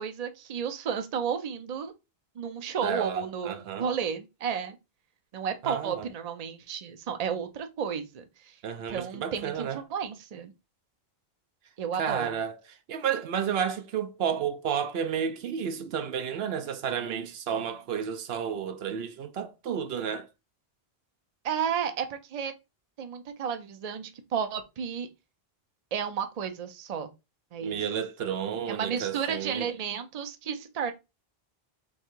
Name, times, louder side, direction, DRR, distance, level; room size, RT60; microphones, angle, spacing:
voice 1, 0.0-1.9 2.4-4.8 5.3-8.6 8.9-10.5 11.8-12.3 21.4-22.5 23.0-25.1 25.9-27.1 27.5-27.8 28.7-30.9, right 7 dB, 45° right, 0.7 m, -32 dB
voice 2, 2.8-3.9 5.6-6.1 8.6-9.8 12.0-20.3 27.6-29.7, right 8 dB, 75° right, 0.8 m, -31 dB
3.6 x 3.1 x 4.5 m
omnidirectional pair, 1.0 m